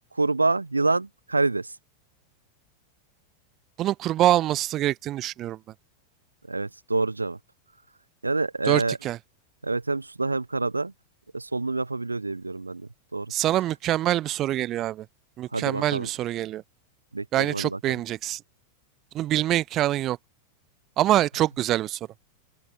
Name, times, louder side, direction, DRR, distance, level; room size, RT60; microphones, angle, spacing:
voice 1, 0.2-1.7 6.5-7.4 8.2-9.0 9.6-10.9 11.3-12.8 13.1-13.3 15.5-16.1 17.1-18.0, right 3 dB, 80° right, 0.4 m, -27 dB
voice 2, 3.8-5.6 8.7-9.2 13.3-15.1 15.4-16.6 17.3-18.4 19.1-20.2 21.0-22.0, right 13 dB, 35° right, 2.1 m, -25 dB
open air
figure-of-eight pair, 90°, 0 cm